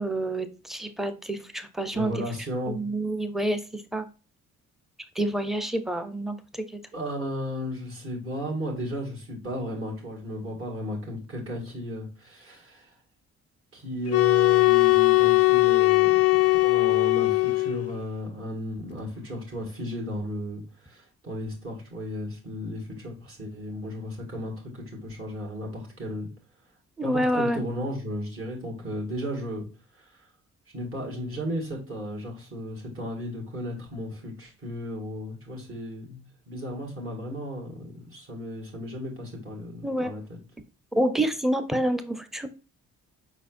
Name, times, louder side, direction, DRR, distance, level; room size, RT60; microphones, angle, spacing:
voice 1, 0.0-2.2 2.7-4.1 5.2-6.8 27.0-27.6 39.8-40.1 41.0-42.5, right 1 dB, ahead, 10 dB, 0.6 m, -28 dB
voice 2, 1.9-2.8 6.9-12.9 13.7-26.3 27.0-29.7 29.9-30.3 30.7-40.4, equal, 45° right, -2 dB, 2.0 m, -35 dB
sound 1, 14.1-18.0, left 22 dB, 50° left, 0.4 m, -20 dB
5.0 x 4.0 x 2.5 m, 0.33 s
cardioid pair, 90°, 30 cm